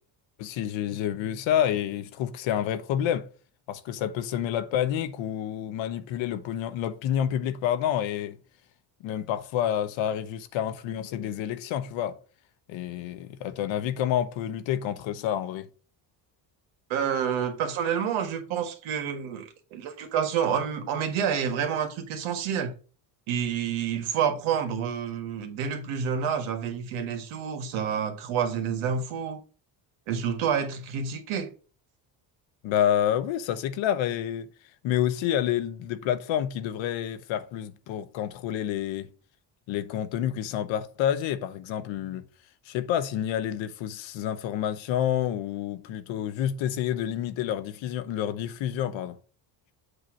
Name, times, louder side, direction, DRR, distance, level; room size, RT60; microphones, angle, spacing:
voice 1, 0.4-3.3 3.7-8.4 9.0-12.2 12.7-15.7 32.6-34.5 34.8-39.1 39.7-42.2 42.7-49.2, left 10 dB, 75° left, 0.9 m, -28 dB
voice 2, 16.9-22.7 23.3-29.4 30.1-31.5, right 7 dB, 85° right, 1.6 m, -28 dB
8.0 x 2.8 x 6.2 m
cardioid pair, 115°, 46 cm